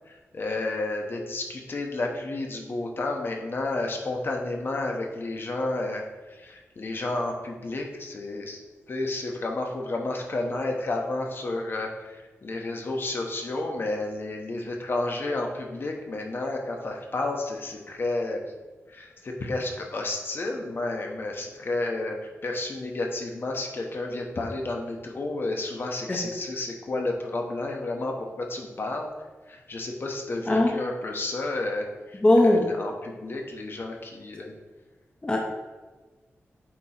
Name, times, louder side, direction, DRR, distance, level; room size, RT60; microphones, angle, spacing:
voice 1, 0.1-8.6 8.9-18.4 18.9-22.2 22.4-29.1 29.5-34.5, left 2 dB, 50° left, 1 dB, 0.9 m, -31 dB
voice 2, 32.2-32.7 35.2-35.4, left 1 dB, 20° left, 0 dB, 0.7 m, -19 dB
8.6 x 3.0 x 4.3 m, 1.3 s
wide cardioid pair, 130°, 5 cm